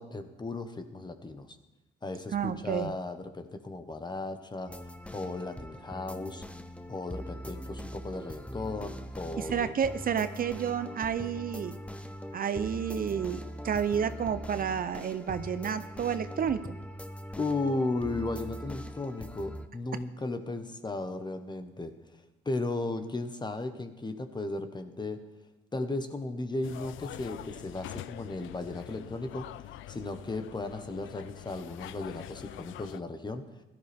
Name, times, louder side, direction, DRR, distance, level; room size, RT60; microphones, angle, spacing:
voice 1, 0.0-1.6 2.0-4.7 5.1-6.4 6.9-9.7 17.4-25.2 25.7-33.4, left 2 dB, 20° left, 8 dB, 1.3 m, -35 dB
voice 2, 2.3-2.9 9.4-11.8 12.3-16.8, right 7 dB, 45° right, 12 dB, 0.6 m, -30 dB
sound 1, 4.7-19.7, equal, 5° left, 0.8 m, -42 dB
sound 2, 26.6-33.0, left 13 dB, 80° left, 0.4 m, -45 dB
16.5 x 13.0 x 3.6 m, 1.1 s
cardioid pair, 90°, 20 cm